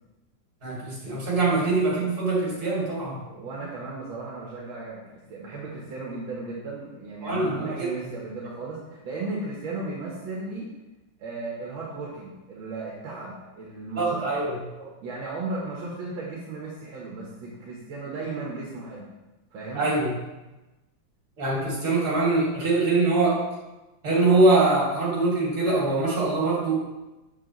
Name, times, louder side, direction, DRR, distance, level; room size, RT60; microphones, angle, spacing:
voice 1, 0.6-3.2 7.2-8.1 13.9-14.5 19.7-20.1 21.4-23.4 24.0-26.9, right 2 dB, 50° right, -5 dB, 3.1 m, -23 dB
voice 2, 3.3-10.7 11.2-14.4 15.0-19.1 19.5-19.9, right 3 dB, 80° right, -4 dB, 2.0 m, -35 dB
7.6 x 7.3 x 3.1 m, 1.1 s
omnidirectional pair, 2.2 m